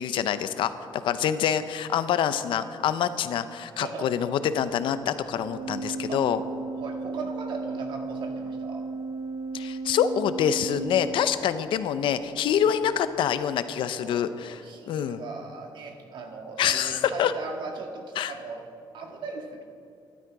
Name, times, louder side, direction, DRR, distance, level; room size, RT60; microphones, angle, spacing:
voice 1, 0.0-6.4 9.5-15.2 16.6-17.3 18.2-18.3, left 9 dB, 80° left, 12 dB, 0.7 m, -26 dB
voice 2, 3.7-4.1 6.1-6.2 6.8-8.9 12.6-12.7 13.9-18.6 18.9-19.6, right 4 dB, 70° right, 3 dB, 2.0 m, -38 dB
Organ, 5.4-11.9, right 3 dB, 50° right, 0.8 m, -35 dB
14.0 x 12.0 x 4.8 m, 2.4 s
cardioid pair, 135°, 8 cm